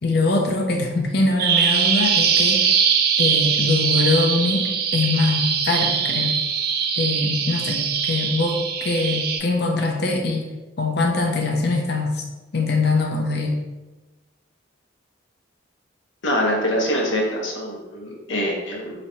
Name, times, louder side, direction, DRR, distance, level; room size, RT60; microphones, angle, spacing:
voice 1, 0.0-2.7 3.2-6.3 6.9-10.4 10.8-12.2 12.5-13.6, left 3 dB, 55° left, 2 dB, 0.6 m, -22 dB
Bird vocalization bird call bird song, 1.4-9.4, right 7 dB, 50° right, 0.3 m, -21 dB
voice 2, 16.2-18.9, equal, 75° left, -2 dB, 0.9 m, -24 dB
3.1 x 2.7 x 4.3 m, 1.1 s
head